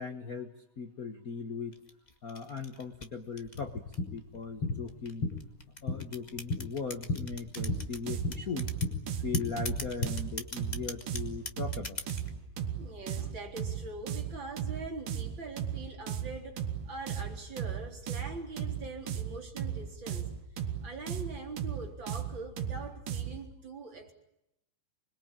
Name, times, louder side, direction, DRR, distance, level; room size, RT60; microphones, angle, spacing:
voice 1, 0.0-1.8 2.2-3.8 4.1-5.3 5.8-8.7 9.2-12.0, left 5 dB, 75° left, 6 dB, 0.8 m, -39 dB
sound 1, 1.7-4.2 4.9-8.0 8.3-8.9 9.3-12.3, left 2 dB, 20° left, 1.3 m, -41 dB
sound 2, 3.6-10.1, left 3 dB, 45° left, 5.4 m, -36 dB
sound 3, 7.6-23.5, right 8 dB, 85° right, 3.3 m, -36 dB
voice 2, 12.5-20.3 20.8-24.1, right 3 dB, 35° right, 1 dB, 4.4 m, -43 dB
26.5 x 21.5 x 8.8 m, 0.82 s
omnidirectional pair, 3.7 m